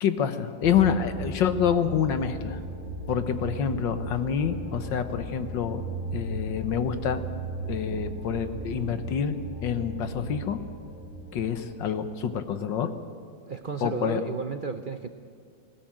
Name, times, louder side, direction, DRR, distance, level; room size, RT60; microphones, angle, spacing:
voice 1, 0.0-2.6 3.1-5.8 6.1-7.2 7.7-9.3 9.6-10.6 11.3-12.9 13.8-14.2, left 8 dB, 80° left, 9 dB, 1.8 m, -27 dB
sound 1, 0.6-12.6, right 2 dB, 5° right, 6.1 m, -36 dB
voice 2, 13.5-15.1, right 5 dB, 75° right, 8 dB, 0.4 m, -33 dB
20.0 x 17.0 x 9.0 m, 2.3 s
omnidirectional pair, 2.0 m